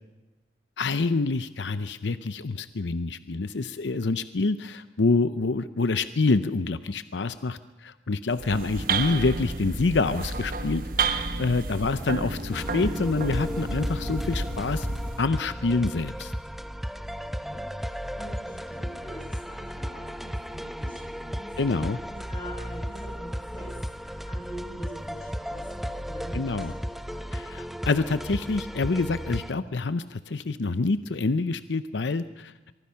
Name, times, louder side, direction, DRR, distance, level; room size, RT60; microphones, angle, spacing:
voice 1, 0.8-14.9 15.2-16.3 21.6-22.0 26.3-26.7 27.3-32.5, left 3 dB, 85° left, 12 dB, 0.7 m, -27 dB
sound 1, 8.3-15.3, right 3 dB, 50° right, 1.4 m, -31 dB
sound 2, 12.5-29.5, equal, ahead, 0.6 m, -35 dB
voice 2, 17.9-21.5 22.1-23.8 24.0-27.4, equal, 30° left, 0 dB, 6.8 m, -44 dB
24.0 x 23.5 x 5.7 m, 1.1 s
head